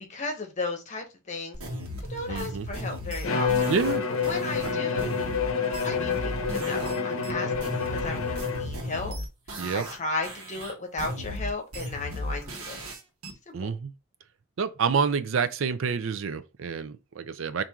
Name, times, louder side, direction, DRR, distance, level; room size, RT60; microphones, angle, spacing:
voice 1, 0.1-1.6 2.1-3.7 4.1-5.2 5.8-9.1 9.7-12.8 13.5-13.7, left 3 dB, 35° left, 0.9 m, -35 dB
sound 1, 1.5-7.0 7.2-10.0 10.2-13.3, equal, 90° right, 1.1 m, -36 dB
voice 2, 2.3-2.7 3.7-4.0 4.6-4.8 9.6-9.9 13.5-13.9 14.6-17.6, right 6 dB, 65° right, 0.4 m, -28 dB
Bowed string instrument, 3.2-8.9, left 5 dB, 70° left, 0.7 m, -28 dB
4.4 x 2.6 x 3.6 m
head